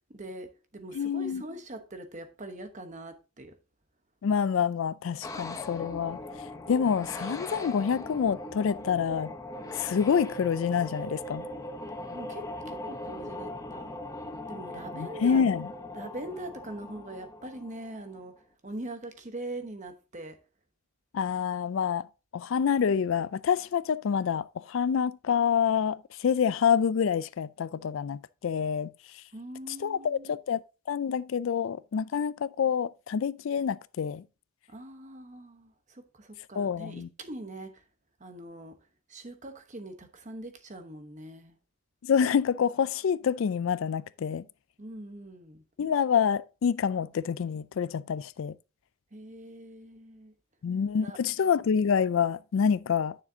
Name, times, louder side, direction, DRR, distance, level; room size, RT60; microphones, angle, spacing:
voice 1, 0.1-3.6 12.1-14.0 14.5-15.5 15.9-20.4 29.3-30.4 34.7-37.8 38.2-38.8 39.1-41.6 44.8-45.6 49.1-50.3 51.0-51.2, right 1 dB, 35° right, 1.0 m, -42 dB
voice 2, 0.9-1.4 4.2-9.3 9.7-11.5 15.0-15.7 21.1-22.1 22.3-29.2 29.8-30.6 30.9-34.2 36.6-37.1 42.0-44.4 45.8-48.5 50.6-53.2, left 7 dB, 65° left, 0.3 m, -27 dB
sound 1, 5.2-18.2, left 1 dB, 15° left, 0.7 m, -40 dB
9.6 x 6.6 x 2.7 m
head